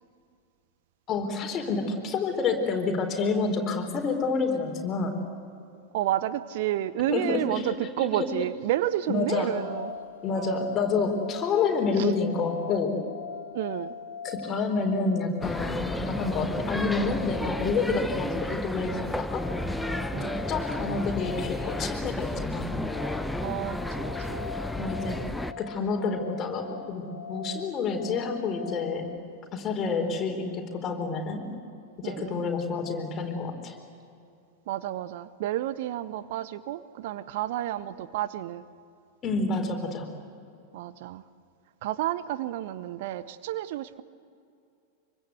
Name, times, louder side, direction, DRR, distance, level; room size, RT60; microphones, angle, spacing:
voice 1, 1.1-5.2 7.1-8.3 9.1-9.7 10.2-13.0 14.2-19.9 20.5-22.7 24.8-25.2 25.6-27.0 27.3-29.1 29.5-31.5 32.0-33.7 39.2-40.1, left 4 dB, 30° left, 3 dB, 4.1 m, -28 dB
voice 2, 5.9-9.9 10.3-10.6 12.0-12.1 13.5-13.9 20.1-20.4 23.4-24.5 30.0-30.2 32.0-32.5 34.7-38.6 40.7-41.2 41.8-44.0, right 13 dB, 50° right, 15 dB, 0.7 m, -31 dB
sound 1, 9.5-29.2, left 5 dB, 65° left, 2.1 m, -42 dB
sound 2, 15.4-25.5, left 1 dB, 5° left, 0.9 m, -32 dB
25.5 x 24.5 x 8.2 m, 2.5 s
figure-of-eight pair, 90°, 0 cm